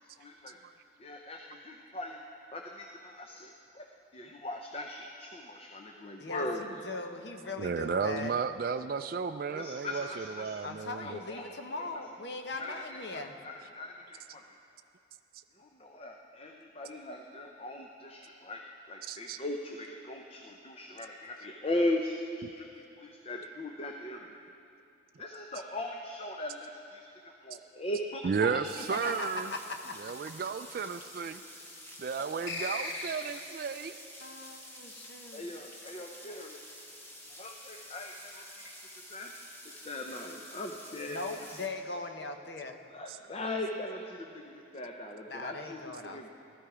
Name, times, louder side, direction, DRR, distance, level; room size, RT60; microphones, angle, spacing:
voice 1, 0.2-0.6 1.0-2.2 2.5-3.9 4.1-6.8 9.5-10.7 11.0-11.9 12.6-14.6 15.6-24.4 25.2-28.9 35.3-37.0 37.4-39.3 39.6-41.6 42.9-46.3, left 1 dB, 30° left, 2 dB, 0.6 m, -39 dB
voice 2, 6.2-8.4 10.6-13.4 28.9-29.9 34.2-35.5 41.1-42.8 45.3-46.3, left 2 dB, 60° left, 5 dB, 0.9 m, -39 dB
voice 3, 7.6-11.2 19.1-19.4 28.2-29.5 30.0-31.4 32.0-33.9, right 5 dB, 50° right, 8 dB, 0.3 m, -33 dB
sound 1, 28.6-41.7, equal, 10° left, 1.0 m, -49 dB
sound 2, 32.5-33.6, left 2 dB, 85° left, 1.8 m, -37 dB
16.5 x 13.0 x 4.9 m, 2.7 s
head